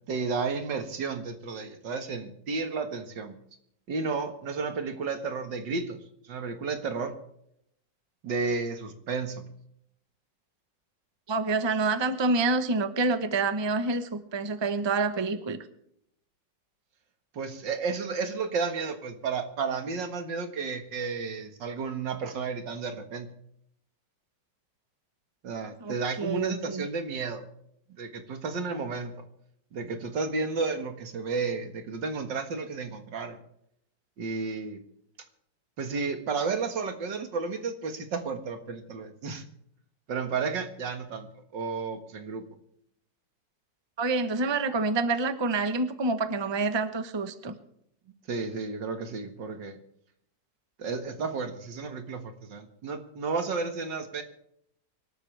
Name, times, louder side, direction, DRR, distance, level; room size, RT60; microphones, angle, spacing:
voice 1, 0.1-3.4 3.9-7.1 8.2-9.5 17.3-23.3 25.4-27.4 28.0-29.1 29.7-33.4 34.2-34.8 35.8-39.4 40.1-42.4 48.3-49.8 50.8-54.2, right 4 dB, 80° right, 7 dB, 2.4 m, -32 dB
voice 2, 11.3-15.6 25.8-26.9 44.0-47.5, right 3 dB, 20° right, 10 dB, 0.8 m, -27 dB
25.0 x 13.0 x 3.4 m, 0.72 s
omnidirectional pair, 1.9 m